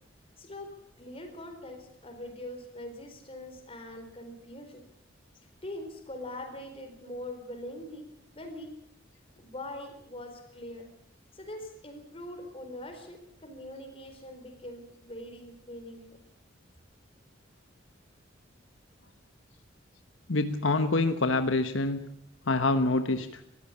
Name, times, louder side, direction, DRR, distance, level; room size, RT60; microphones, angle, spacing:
voice 1, 0.4-4.8 5.6-8.7 9.4-10.9 11.3-16.2, left 1 dB, 30° left, 5 dB, 4.4 m, -43 dB
voice 2, 20.3-22.0 22.5-23.4, left 2 dB, 80° left, 9 dB, 1.2 m, -26 dB
21.0 x 15.0 x 8.5 m, 0.74 s
head